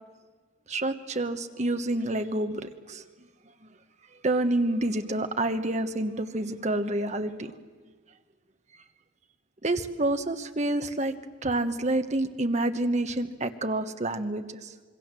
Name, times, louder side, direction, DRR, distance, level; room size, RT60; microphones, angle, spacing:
voice 1, 0.7-3.0 4.2-7.5 9.6-11.1 11.4-14.7, right 2 dB, 35° right, 8 dB, 1.1 m, -28 dB
26.0 x 22.0 x 7.6 m, 1.5 s
head